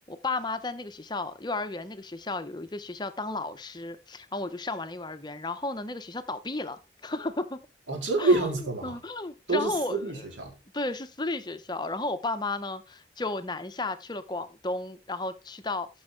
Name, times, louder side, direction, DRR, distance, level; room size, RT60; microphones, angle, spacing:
voice 1, 0.1-7.6 8.2-8.4 8.8-10.2 10.7-15.9, left 2 dB, 20° left, 0.7 m, -33 dB
voice 2, 7.9-9.0 9.5-10.5, right 2 dB, 85° right, 4.1 m, -27 dB
13.5 x 6.3 x 3.7 m
head